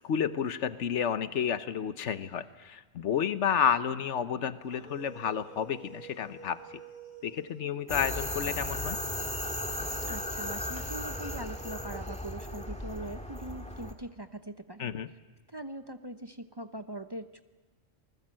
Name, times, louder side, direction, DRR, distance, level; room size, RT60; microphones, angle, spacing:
voice 1, 0.0-6.8 7.2-9.0 14.8-15.1, left 8 dB, 70° left, 12 dB, 1.2 m, -31 dB
sound 1, 4.6-8.4 9.7-13.3, right 3 dB, 45° right, 7.3 m, -51 dB
sound 2, 7.9-13.9, left 1 dB, 5° left, 1.7 m, -36 dB
voice 2, 10.1-14.9 15.5-17.4, right 1 dB, 25° right, 9 dB, 0.7 m, -42 dB
27.5 x 20.0 x 7.6 m, 1.2 s
omnidirectional pair, 1.3 m